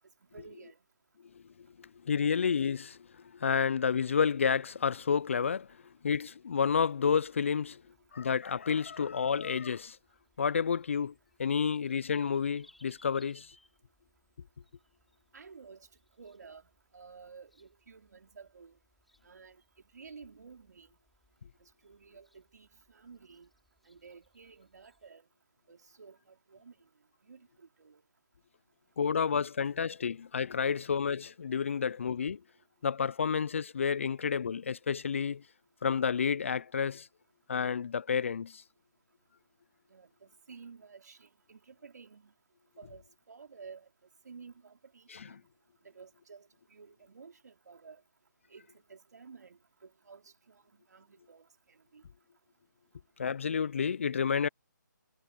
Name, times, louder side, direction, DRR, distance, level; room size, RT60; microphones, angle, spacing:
voice 1, 0.2-0.8 15.3-15.9 16.2-18.8 19.2-21.0 21.6-23.5 23.8-25.3 25.7-26.7 27.2-28.0 39.9-42.3 42.8-43.9 44.2-45.4 45.8-48.0 48.5-52.0, right 5 dB, 60° right, 4.1 m, -53 dB
voice 2, 1.8-3.0 3.3-5.7 6.0-7.8 8.1-10.0 10.4-11.1 11.4-13.5 29.0-32.4 32.8-35.4 35.8-37.1 37.5-38.6 53.2-54.5, left 6 dB, 40° left, 0.4 m, -30 dB
sound 1, 6.6-25.1, left 1 dB, ahead, 7.2 m, -69 dB
figure-of-eight pair, 160°, 10 cm